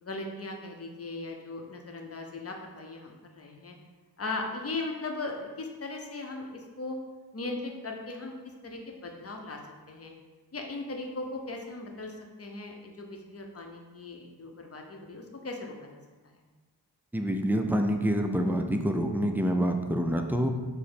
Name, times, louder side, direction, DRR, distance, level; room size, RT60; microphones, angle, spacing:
voice 1, 0.0-3.7 4.2-7.0 7.3-8.3 8.6-9.6 9.9-10.1 10.5-16.0 16.2-16.4, left 2 dB, 35° left, 2 dB, 0.6 m, -38 dB
voice 2, 17.1-20.5, equal, 5° right, 4 dB, 0.3 m, -27 dB
4.8 x 2.0 x 4.2 m, 1.3 s
cardioid pair, 50°, 40 cm